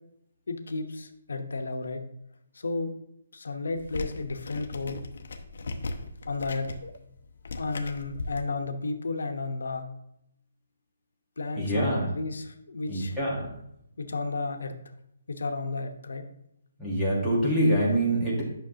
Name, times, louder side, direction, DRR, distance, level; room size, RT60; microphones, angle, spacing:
voice 1, 0.5-2.0 2.5-2.9 3.3-5.0 6.3-6.9 7.6-9.9 11.4-13.2 14.0-14.8 15.3-16.2, left 3 dB, 85° left, 6 dB, 0.9 m, -33 dB
sound 1, 3.8-8.4, left 3 dB, 55° left, 0.8 m, -38 dB
voice 2, 11.6-12.1 12.9-13.5 16.8-18.4, right 1 dB, 5° right, -6 dB, 1.5 m, -25 dB
10.5 x 5.9 x 2.8 m, 0.79 s
hypercardioid pair, 175°, 0 cm